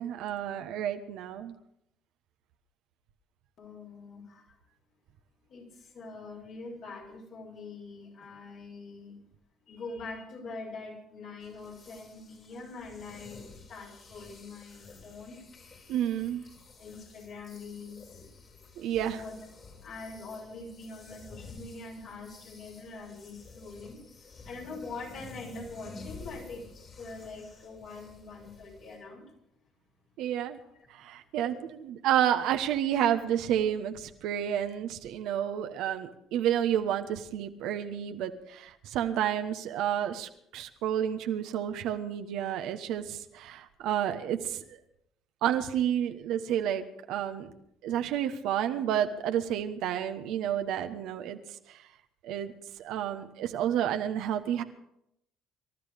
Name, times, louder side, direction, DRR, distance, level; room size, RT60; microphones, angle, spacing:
voice 1, 0.0-1.5 15.9-16.4 18.8-19.2 30.2-30.6 30.9-44.8 45.4-47.5 47.8-51.4 51.7-51.8 52.2-52.5 52.8-54.6, right 10 dB, 70° right, 7 dB, 1.2 m, -30 dB
voice 2, 3.6-4.6 5.5-9.2 9.7-15.4 16.8-18.3 19.0-19.4 19.8-29.3 31.4-31.6, left 3 dB, 65° left, -1 dB, 6.7 m, -44 dB
sound 1, 11.4-29.0, left 4 dB, 45° left, 5.6 m, -51 dB
25.5 x 13.5 x 3.6 m, 0.77 s
hypercardioid pair, 55°, 0 cm